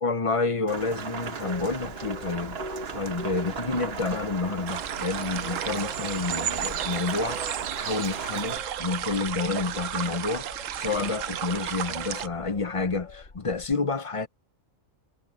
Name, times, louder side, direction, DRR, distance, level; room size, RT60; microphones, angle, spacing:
voice 1, 0.0-2.6 2.9-7.4 7.8-10.5 10.8-14.3, left 4 dB, 30° left, 0.7 m, -29 dB
Rain, 0.7-8.6, right 6 dB, 55° right, 1.2 m, -37 dB
sound 1, 1.4-13.7, left 1 dB, 65° left, 2.7 m, -44 dB
sound 2, 4.7-12.3, right 10 dB, 75° right, 1.1 m, -33 dB
omnidirectional pair, 1.3 m